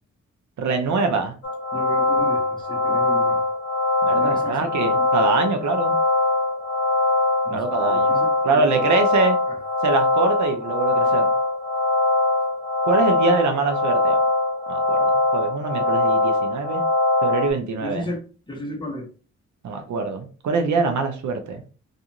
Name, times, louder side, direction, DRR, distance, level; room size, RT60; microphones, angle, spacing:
voice 1, 0.6-1.3 4.0-6.0 7.5-9.4 9.8-11.3 12.8-14.2 14.7-16.8 17.2-18.1 19.6-21.6, right 4 dB, 70° right, 6 dB, 0.6 m, -24 dB
sound 1, 1.4-17.5, left 2 dB, 35° left, 1.1 m, -22 dB
voice 2, 1.7-3.4 4.1-4.7 4.9-5.0 7.4-9.1 9.5-9.6 17.8-18.2 18.5-19.1, left 1 dB, 15° left, 0 dB, 0.8 m, -34 dB
2.5 x 2.4 x 2.8 m, 0.38 s
wide cardioid pair, 130°, 30 cm